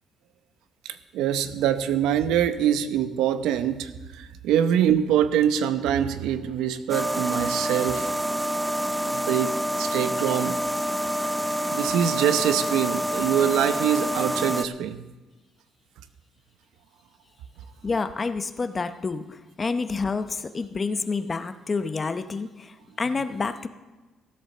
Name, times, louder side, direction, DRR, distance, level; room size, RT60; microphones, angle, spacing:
voice 1, 0.8-8.3 9.1-10.6 11.7-15.0, right 9 dB, 90° right, 11 dB, 0.9 m, -24 dB
sound 1, 6.9-14.6, right 1 dB, 5° right, 0.5 m, -27 dB
voice 2, 17.8-23.7, left 4 dB, 30° left, 10 dB, 0.8 m, -29 dB
15.0 x 8.7 x 6.7 m, 1.2 s
cardioid pair, 120°, 0 cm